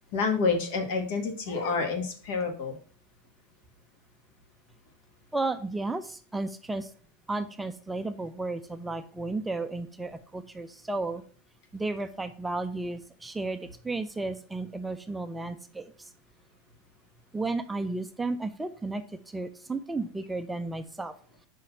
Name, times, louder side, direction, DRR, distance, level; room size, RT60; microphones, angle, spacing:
voice 1, 0.1-2.8, left 4 dB, 65° left, 4 dB, 1.6 m, -28 dB
voice 2, 5.3-6.9 7.3-11.2 11.7-13.6 13.8-15.9 17.3-19.0 19.3-21.1, right 2 dB, 5° right, 8 dB, 0.4 m, -33 dB
5.3 x 4.1 x 5.5 m, 0.43 s
supercardioid pair, 140°, 0 cm